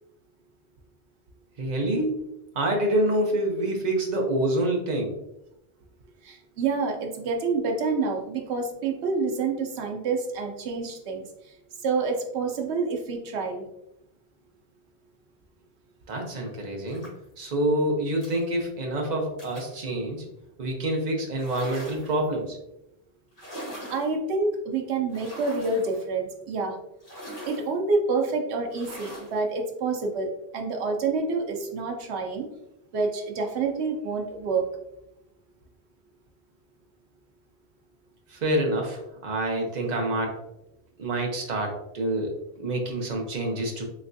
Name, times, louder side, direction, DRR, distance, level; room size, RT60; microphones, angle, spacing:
voice 1, 1.6-2.3 2.5-5.1 16.1-17.1 17.4-20.2 20.6-22.6 38.3-40.4 41.0-43.8, right 1 dB, 45° right, 1 dB, 0.8 m, -27 dB
voice 2, 6.2-11.2 11.8-13.7 23.9-26.8 27.4-32.5 32.9-34.7, right 4 dB, 90° right, 3 dB, 0.9 m, -28 dB
sound 1, 16.9-17.3 18.2-18.4 19.4-19.8 21.3-22.2 23.3-24.1 25.1-26.0 27.0-27.7 28.7-29.4, equal, 35° left, 1.5 m, -41 dB
3.3 x 3.1 x 2.6 m, 0.86 s
omnidirectional pair, 1.1 m